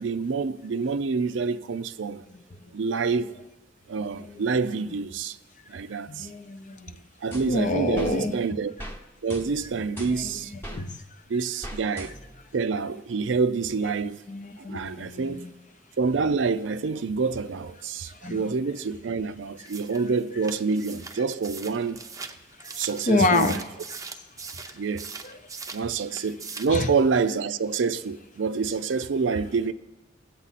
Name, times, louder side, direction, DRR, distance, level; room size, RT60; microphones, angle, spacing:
voice 1, 0.0-2.2 2.7-3.3 3.9-5.4 5.7-6.3 7.2-8.7 9.2-10.5 11.3-12.1 12.5-14.2 14.6-15.4 16.0-22.0 22.8-23.6 24.7-25.1 25.7-29.7, right 4 dB, 70° right, 0.5 m, -27 dB
voice 2, 6.1-7.0 7.4-8.3 10.2-11.0 14.0-15.5 18.0-18.4 19.9-20.0 22.6-22.8 23.1-23.6 24.7-24.8 25.2-25.4 26.7-26.9, left 2 dB, 40° left, 0.6 m, -28 dB
sound 1, 7.3-8.2 8.8-9.0 9.3-10.8 11.6-12.4, equal, 10° left, 1.0 m, -39 dB
sound 2, 19.6-25.9 26.2-26.8, right 5 dB, 20° right, 0.6 m, -40 dB
18.0 x 8.1 x 4.1 m
head